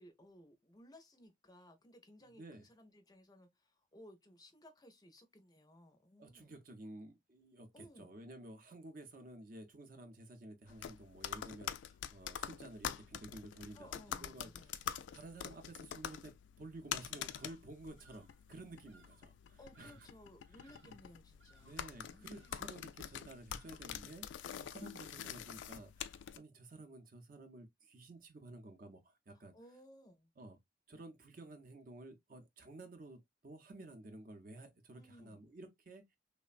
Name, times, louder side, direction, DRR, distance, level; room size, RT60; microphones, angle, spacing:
voice 1, 0.0-6.5 7.7-8.1 13.7-14.8 19.6-22.6 29.3-30.3 34.9-35.4, left 1 dB, 20° left, 0.5 m, -60 dB
voice 2, 2.4-2.7 6.2-14.8 15.1-20.0 20.5-20.9 21.6-24.3 24.6-29.5 30.4-30.6 30.9-36.0, right 2 dB, 50° right, 0.6 m, -53 dB
sound 1, 10.7-26.4, left 9 dB, 80° left, 0.3 m, -46 dB
Bird vocalization bird call bird song, 17.3-17.7 18.0-18.4 18.9-19.3 19.7-20.3 20.6-21.1 21.4-21.9 22.3-22.8 23.5-24.0, right 3 dB, 90° right, 0.6 m, -67 dB
3.1 x 2.1 x 2.4 m
head